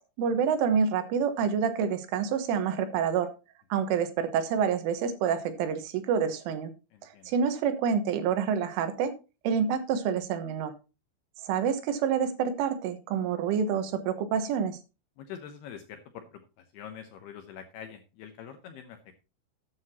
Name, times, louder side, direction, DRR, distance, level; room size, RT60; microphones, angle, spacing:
voice 1, 0.2-3.3 3.7-6.7 7.0-9.1 9.5-10.7 11.4-14.8, right 7 dB, 80° right, 9 dB, 3.7 m, -27 dB
voice 2, 6.9-7.3 15.2-19.0, left 8 dB, 75° left, 6 dB, 2.5 m, -45 dB
13.5 x 9.6 x 2.9 m, 0.30 s
omnidirectional pair, 5.7 m